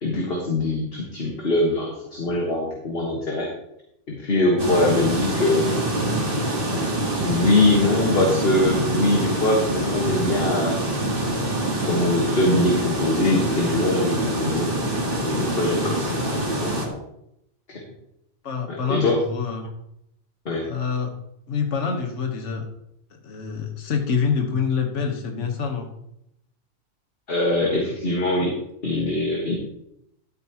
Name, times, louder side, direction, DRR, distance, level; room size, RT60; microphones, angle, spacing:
voice 1, 0.0-3.5 4.1-5.7 7.2-10.8 11.8-14.7 15.3-17.0 17.7-17.8 18.7-19.2 20.5-20.6 27.3-28.5 28.8-29.6, left 2 dB, 50° left, -1 dB, 1.7 m, -22 dB
sound 1, 4.6-16.9, right 1 dB, 45° right, 1.9 m, -25 dB
voice 2, 18.4-19.7 20.7-21.1 21.5-22.6 23.1-25.9 28.4-28.5, left 6 dB, 65° left, 3 dB, 1.6 m, -26 dB
12.5 x 8.3 x 3.0 m, 0.78 s
omnidirectional pair, 1.3 m